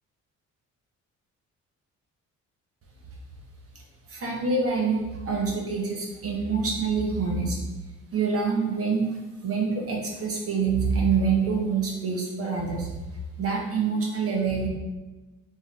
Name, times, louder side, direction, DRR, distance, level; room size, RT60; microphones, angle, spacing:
voice 1, 4.1-7.6 8.1-9.2 9.4-12.9 13.4-14.7, right 5 dB, 50° right, -1 dB, 1.2 m, -26 dB
3.8 x 3.5 x 3.2 m, 1.2 s
cardioid pair, 90°, 30 cm